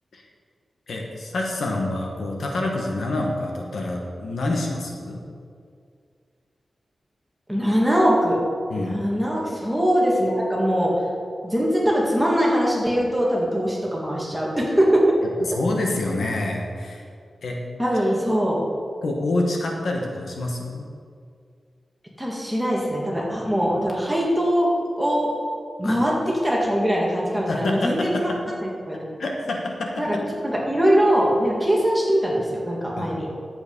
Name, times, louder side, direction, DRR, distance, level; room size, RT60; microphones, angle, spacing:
voice 1, 0.9-5.2 8.7-9.0 15.4-17.0 17.4-17.6 19.0-20.8 25.8-26.0 27.5-28.5 29.2-30.2 33.0-33.1, left 2 dB, 70° left, 0 dB, 1.6 m, -27 dB
voice 2, 7.5-8.4 8.8-10.9 11.4-15.0 17.8-18.6 22.2-24.7 25.0-25.3 25.8-26.1 26.4-28.3 28.6-29.1 30.0-30.2 30.4-33.3, equal, 5° right, -4 dB, 2.0 m, -22 dB
11.0 x 8.0 x 5.6 m, 2.2 s
wide cardioid pair, 165°, 0 cm